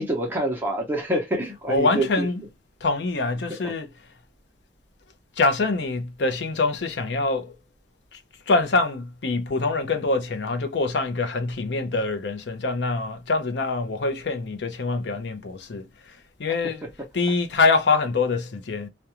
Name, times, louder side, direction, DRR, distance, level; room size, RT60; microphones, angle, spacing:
voice 1, 0.0-2.3 3.6-3.7, right 1 dB, 10° right, 0.6 m, -26 dB
voice 2, 1.7-2.4 2.8-3.9 5.4-7.5 8.1-8.2 8.5-16.9 17.1-18.9, left 3 dB, 70° left, 0.5 m, -25 dB
2.4 x 2.2 x 2.8 m
head